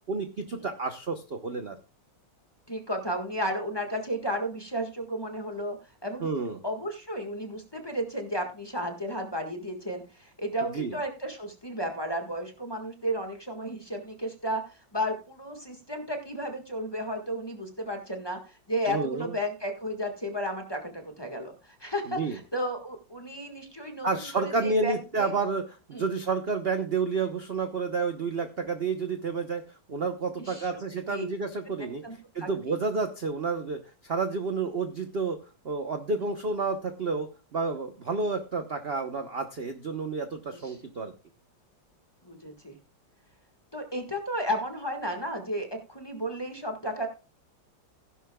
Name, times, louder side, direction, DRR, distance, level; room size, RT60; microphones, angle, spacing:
voice 1, 0.1-1.8 6.2-6.6 10.7-10.9 18.9-19.3 22.1-22.4 24.0-25.6 25.9-29.6 29.9-32.0 32.3-35.4 35.6-41.1, right 4 dB, 45° right, 7 dB, 0.9 m, -30 dB
voice 2, 2.7-5.8 6.0-6.3 6.6-25.3 25.9-26.1 30.4-30.7 31.1-31.3 31.8-32.8 40.6-40.8 42.2-42.7 43.7-47.1, equal, 15° left, 3 dB, 1.5 m, -33 dB
16.0 x 11.0 x 2.3 m, 0.31 s
omnidirectional pair, 2.1 m